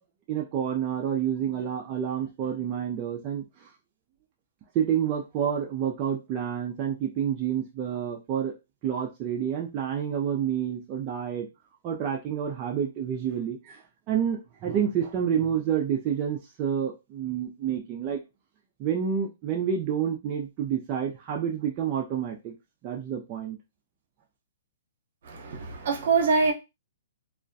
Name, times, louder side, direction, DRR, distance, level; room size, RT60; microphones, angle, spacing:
voice 1, 0.3-3.7 4.7-8.5 8.8-11.5 11.8-18.2 18.8-22.5 22.8-23.6, right 8 dB, 30° right, 0.3 m, -29 dB
voice 2, 25.2-26.5, right 4 dB, 60° right, 0.7 m, -24 dB
2.3 x 2.1 x 2.5 m
hypercardioid pair, 145°, 0 cm